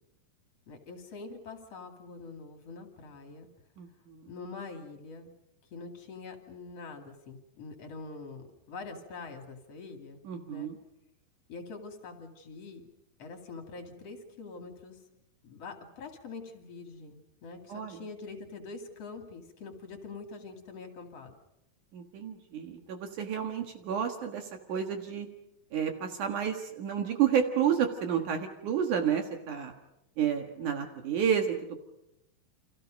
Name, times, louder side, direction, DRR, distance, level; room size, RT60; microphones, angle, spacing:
voice 1, 0.7-3.5 4.3-5.3 5.7-10.2 10.5-10.7 11.5-12.8 13.2-15.0 15.4-21.3, left 4 dB, 45° left, 5 dB, 3.2 m, -44 dB
voice 2, 3.8-4.3 10.2-10.8 17.7-18.0 21.9-25.3 25.7-29.7 30.2-31.8, right 8 dB, 65° right, 5 dB, 2.9 m, -30 dB
30.0 x 26.0 x 5.3 m, 0.85 s
omnidirectional pair, 4.1 m